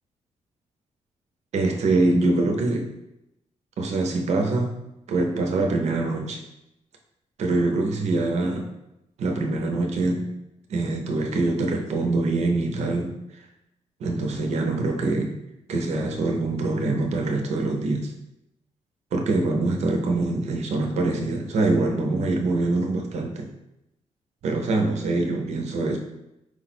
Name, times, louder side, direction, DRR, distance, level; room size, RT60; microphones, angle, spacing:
voice 1, 1.5-2.9 3.8-4.7 5.1-6.4 7.4-8.7 9.2-10.3 10.7-13.1 14.0-15.3 15.7-18.1 19.1-23.5 24.4-26.0, right 2 dB, 65° right, 3 dB, 0.6 m, -24 dB
4.6 x 2.0 x 4.2 m, 0.87 s
wide cardioid pair, 150°, 12 cm